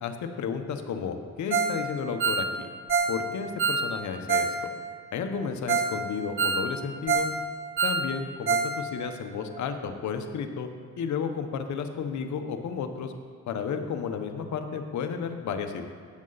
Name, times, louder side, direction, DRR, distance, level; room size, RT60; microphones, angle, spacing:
voice 1, 0.0-2.7 3.1-4.7 5.1-7.3 7.8-10.7 11.0-13.1 13.5-15.9, left 6 dB, 70° left, 6 dB, 1.2 m, -32 dB
Ringtone, 1.5-1.8 2.1-4.6 4.8-4.9 5.4-5.5 5.7-6.0 6.2-7.4 7.6-8.8 9.0-9.1 9.6-9.7, right 5 dB, 40° right, 1.1 m, -26 dB
17.5 x 7.8 x 4.2 m, 2.1 s
cardioid pair, 90°, 30 cm